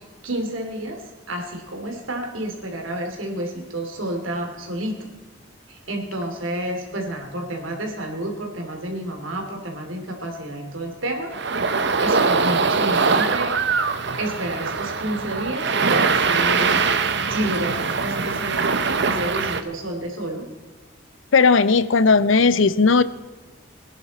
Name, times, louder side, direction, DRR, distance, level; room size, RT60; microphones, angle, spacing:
voice 1, 0.2-1.0 1.3-5.1 5.7-11.3 12.0-13.5 14.2-16.9 17.3-20.4, right 1 dB, 80° right, 2 dB, 2.9 m, -30 dB
sound 1, 11.3-19.6, right 4 dB, 60° right, 0.9 m, -22 dB
voice 2, 21.3-23.0, left 4 dB, 70° left, 16 dB, 0.6 m, -16 dB
21.0 x 10.5 x 4.2 m, 1.3 s
head